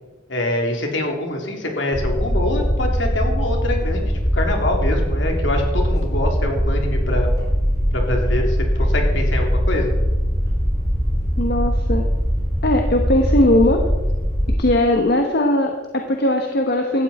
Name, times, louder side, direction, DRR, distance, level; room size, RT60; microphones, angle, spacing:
voice 1, 0.3-7.3 7.9-9.9, left 1 dB, 70° left, 1 dB, 3.2 m, -25 dB
sound 1, 1.9-14.6, equal, 20° left, 4.7 m, -21 dB
voice 2, 11.4-12.0 12.6-13.8 14.6-17.0, left 1 dB, 55° left, 3 dB, 1.3 m, -19 dB
17.0 x 13.0 x 4.3 m, 1.2 s
head